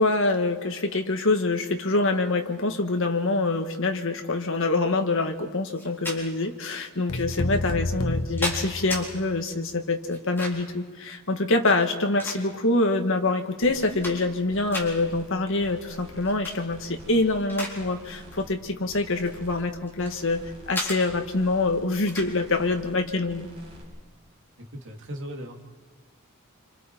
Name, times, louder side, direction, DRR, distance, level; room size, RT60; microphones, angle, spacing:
voice 1, 0.0-20.4 20.7-23.5, left 2 dB, 60° left, 4 dB, 1.7 m, -25 dB
sound 1, 5.7-6.2 7.1-7.2 8.0-9.0 10.1-10.7 11.7-12.8 13.3-13.4 13.8-14.4 14.7-14.9 16.2-16.6 17.0-17.8 18.1-18.3 19.1-20.2 20.7-21.0 22.1-22.3, left 1 dB, 10° left, 4.1 m, -34 dB
sound 2, 7.1-9.4, left 1 dB, 90° left, 1.2 m, -30 dB
sound 3, 13.6-14.2 14.5-15.3 15.6-16.4 16.7-17.5 17.8-18.6 18.9-19.7 20.0-20.7 21.1-21.9 22.2-23.0 23.3-23.8, equal, 25° right, 6.6 m, -47 dB
voice 2, 24.6-25.6, equal, 55° right, 2 dB, 2.3 m, -38 dB
27.0 x 26.0 x 4.6 m, 1.4 s
head